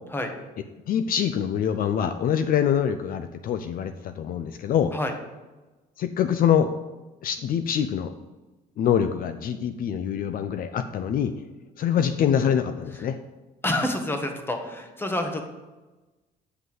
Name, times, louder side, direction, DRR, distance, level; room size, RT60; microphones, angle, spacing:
voice 1, 0.9-4.9 6.0-6.7 7.2-8.1 8.8-11.3 11.8-13.2, left 8 dB, 55° left, 9 dB, 0.6 m, -24 dB
voice 2, 13.6-15.4, left 1 dB, 15° left, 5 dB, 1.5 m, -28 dB
8.3 x 5.4 x 7.7 m, 1.1 s
cardioid pair, 110°, 17 cm